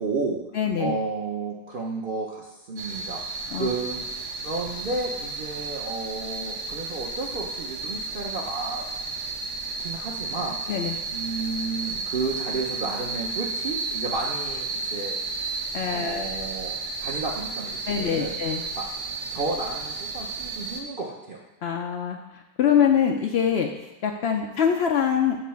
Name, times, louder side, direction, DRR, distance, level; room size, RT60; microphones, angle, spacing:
voice 1, 0.0-0.4 0.8-4.0 4.4-8.8 9.8-15.2 15.9-18.3 18.8-18.9 19.3-21.4, right 3 dB, 50° right, -3 dB, 0.6 m, -32 dB
voice 2, 0.5-0.9 3.5-3.7 10.7-11.0 15.7-16.2 17.9-18.6 21.6-22.2 22.6-23.7 24.0-25.4, left 8 dB, 85° left, 2 dB, 0.5 m, -23 dB
sound 1, 2.8-20.8, right 3 dB, 85° right, 1.3 m, -33 dB
7.3 x 3.1 x 5.6 m, 1.1 s
omnidirectional pair, 1.7 m